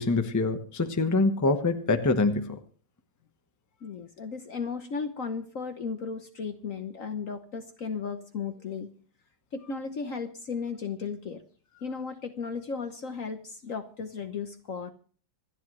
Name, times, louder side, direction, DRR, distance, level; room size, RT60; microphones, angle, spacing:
voice 1, 0.0-2.6, left 3 dB, 10° left, 7 dB, 0.8 m, -25 dB
voice 2, 3.8-8.9 9.5-11.4 11.8-14.9, left 5 dB, 50° left, 8 dB, 1.2 m, -35 dB
26.5 x 10.0 x 3.2 m, 0.42 s
omnidirectional pair, 2.1 m